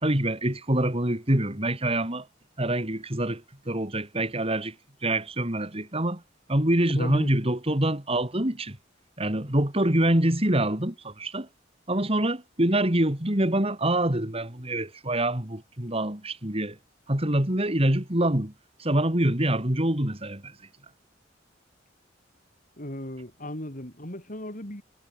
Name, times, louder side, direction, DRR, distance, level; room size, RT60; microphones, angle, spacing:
voice 1, 0.0-2.3 2.6-4.7 5.0-6.2 6.5-8.8 9.2-11.5 11.9-16.8 17.1-18.5 18.8-20.5, right 1 dB, 30° right, 3.3 m, -25 dB
voice 2, 7.0-7.3 22.8-24.8, left 1 dB, 45° left, 6.2 m, -36 dB
head